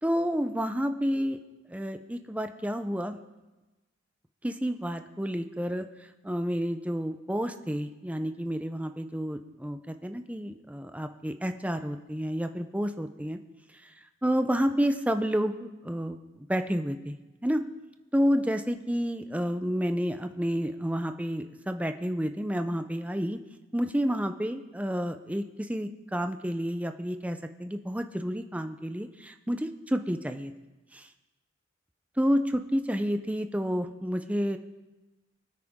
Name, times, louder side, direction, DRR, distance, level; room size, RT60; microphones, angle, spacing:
voice 1, 0.0-1.4 1.7-3.2 4.4-5.8 6.2-13.4 14.2-17.1 17.4-17.6 18.1-23.4 23.7-30.5 30.9-31.1 32.2-34.6, equal, 5° right, 7 dB, 0.7 m, -30 dB
24.5 x 9.3 x 3.7 m, 1.1 s
head